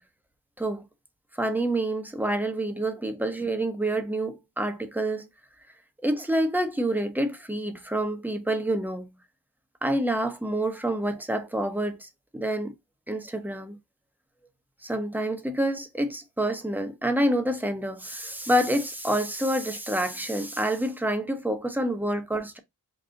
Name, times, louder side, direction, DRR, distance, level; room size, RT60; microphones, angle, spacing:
voice 1, 1.4-5.3 6.0-9.0 9.8-12.7 13.1-13.8 14.8-22.6, right 1 dB, 5° right, 0.9 m, -27 dB
3.9 x 2.4 x 3.8 m
cardioid pair, 45°, 38 cm